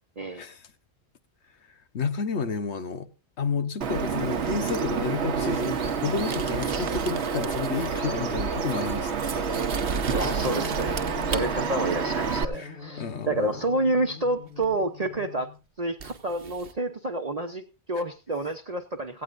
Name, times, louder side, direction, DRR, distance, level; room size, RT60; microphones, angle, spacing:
voice 1, 1.9-3.1 3.4-9.7 12.5-13.6, left 5 dB, 80° left, 1.4 m, -31 dB
Bird vocalization bird call bird song, 3.8-12.4, right 5 dB, 80° right, 1.2 m, -28 dB
sound 1, 5.0-8.1 8.4-11.4 14.6-14.7 16.0-16.7, right 6 dB, 60° right, 1.1 m, -38 dB
sound 2, 10.1-15.6, left 4 dB, 50° left, 3.1 m, -41 dB
voice 2, 10.1-11.0 11.3-15.5 15.8-19.2, right 2 dB, 40° right, 1.0 m, -29 dB
17.5 x 15.5 x 2.6 m
omnidirectional pair, 1.1 m